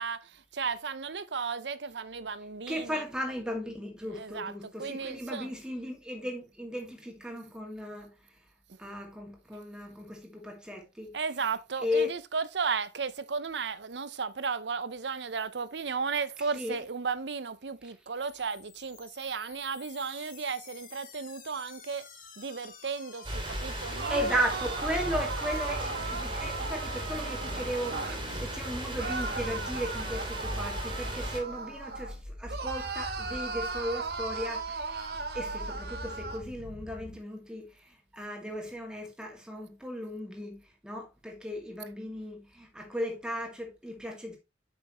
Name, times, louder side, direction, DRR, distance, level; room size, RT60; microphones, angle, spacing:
voice 1, 0.0-3.0 4.0-5.5 8.7-8.8 11.1-22.1 22.4-24.4 30.5-30.6, right 5 dB, 80° right, 0.7 m, -35 dB
voice 2, 2.7-8.1 8.8-11.1 11.8-12.1 16.6-16.8 24.1-35.0 35.3-44.4, equal, 5° right, 2.1 m, -36 dB
sound 1, 18.2-37.2, left 1 dB, 50° left, 1.8 m, -47 dB
sound 2, 23.2-31.4, right 1 dB, 30° right, 2.3 m, -36 dB
sound 3, 23.9-28.2 29.0-32.1 32.5-36.4, right 4 dB, 60° right, 1.2 m, -37 dB
8.1 x 6.1 x 3.0 m
head